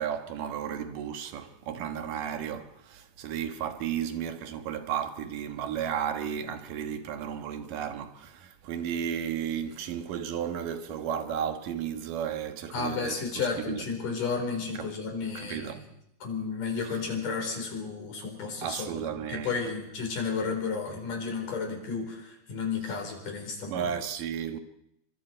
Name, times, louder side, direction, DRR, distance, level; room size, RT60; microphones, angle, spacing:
voice 1, 0.0-13.8 14.8-14.9 15.3-15.8 18.6-19.6 23.7-24.6, right 8 dB, 85° right, 3.0 m, -34 dB
voice 2, 12.7-15.8 16.2-23.9, left 5 dB, 75° left, 5.9 m, -33 dB
29.5 x 24.5 x 4.5 m
omnidirectional pair, 3.8 m